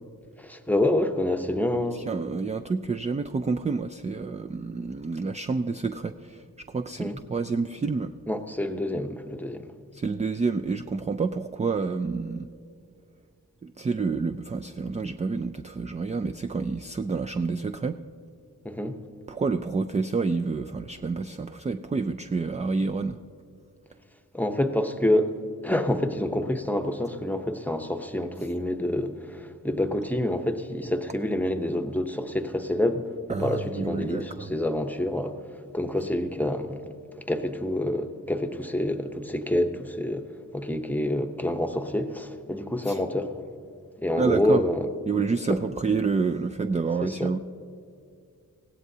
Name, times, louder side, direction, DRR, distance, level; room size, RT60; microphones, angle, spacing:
voice 1, 0.4-2.1 7.0-7.2 8.3-9.7 18.6-19.0 24.3-25.3 25.6-33.1 33.4-35.4 35.7-36.9 37.3-40.3 40.5-43.3 44.0-44.9 45.5-45.6 47.0-47.3, left 1 dB, 5° left, 0.8 m, -27 dB
voice 2, 1.9-8.1 9.9-12.5 13.6-18.0 19.3-23.2 33.3-34.5 42.9-43.0 44.2-44.6 45.1-47.4, right 4 dB, 20° right, 0.3 m, -28 dB
20.0 x 16.0 x 2.8 m
wide cardioid pair, 80°, 33 cm